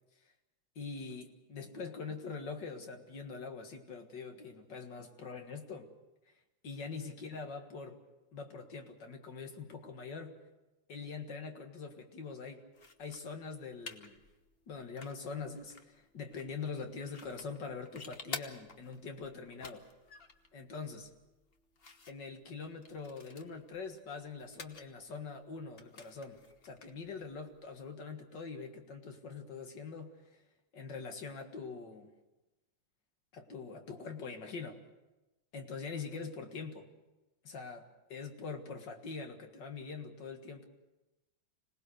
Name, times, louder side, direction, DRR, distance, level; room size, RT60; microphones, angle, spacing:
voice 1, 0.8-5.9 6.6-8.0 8.3-10.3 10.9-12.6 13.0-14.2 14.7-19.8 20.5-21.1 22.1-30.4 30.7-32.1 33.3-34.8 35.5-36.9 37.4-40.7, left 4 dB, 65° left, 5 dB, 2.3 m, -43 dB
sound 1, 12.7-27.9, left 4 dB, 35° left, 1.2 m, -52 dB
26.0 x 19.0 x 6.5 m, 1.1 s
omnidirectional pair, 2.1 m